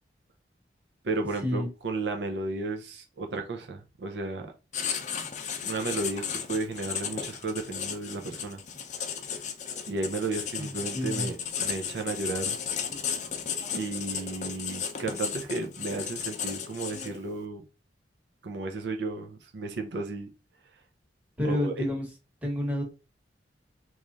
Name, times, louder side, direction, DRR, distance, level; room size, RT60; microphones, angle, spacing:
voice 1, 1.0-4.5 5.6-8.6 9.9-12.6 13.7-17.6 18.4-20.3 21.4-21.8, right 3 dB, 70° right, 0.5 m, -33 dB
Writing, 4.7-17.3, left 7 dB, 40° left, 0.5 m, -34 dB
voice 2, 10.6-11.3 21.4-22.1 22.4-22.8, left 1 dB, 10° right, 1.0 m, -29 dB
3.1 x 2.4 x 3.8 m
head